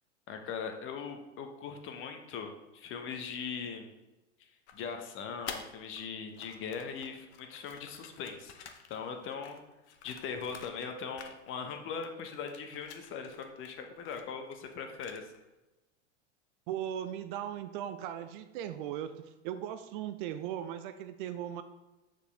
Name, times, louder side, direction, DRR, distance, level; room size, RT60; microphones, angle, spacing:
voice 1, 0.3-3.9 4.7-8.5 8.9-9.6 10.0-15.2, left 6 dB, 35° left, 5 dB, 1.1 m, -40 dB
sound 1, 4.7-6.0 6.3-10.9 11.2-11.8 12.0-15.5, left 7 dB, 65° left, 0.9 m, -50 dB
voice 2, 16.7-21.6, right 10 dB, 45° right, 10 dB, 0.5 m, -38 dB
7.6 x 6.6 x 3.4 m, 1.1 s
figure-of-eight pair, 95°, 36 cm